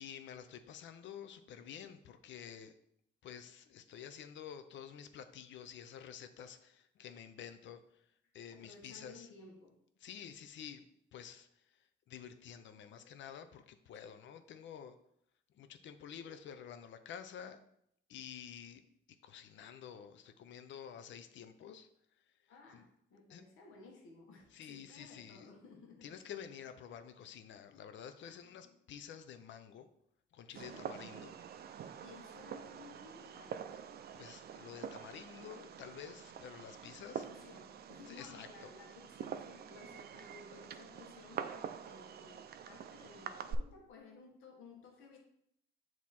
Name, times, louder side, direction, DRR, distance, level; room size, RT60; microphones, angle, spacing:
voice 1, 0.0-2.7 3.2-8.0 8.3-9.3 10.0-10.8 11.1-11.5 11.7-15.0 15.5-17.6 18.1-18.8 19.2-21.9 22.7-22.8 23.3-23.4 24.5-25.5 26.0-29.9 30.3-31.3 34.1-37.3 38.1-38.7, left 8 dB, 70° left, 10 dB, 0.6 m, -50 dB
voice 2, 8.5-9.8 12.3-13.1 22.5-26.2 28.2-28.5 30.6-30.9 32.0-33.9 37.2-45.2, left 4 dB, 90° left, 1 dB, 1.3 m, -57 dB
Fireworks, 30.6-43.6, right 8 dB, 55° right, 0.4 m, -46 dB
7.3 x 3.0 x 4.2 m, 0.74 s
cardioid pair, 90°, 20 cm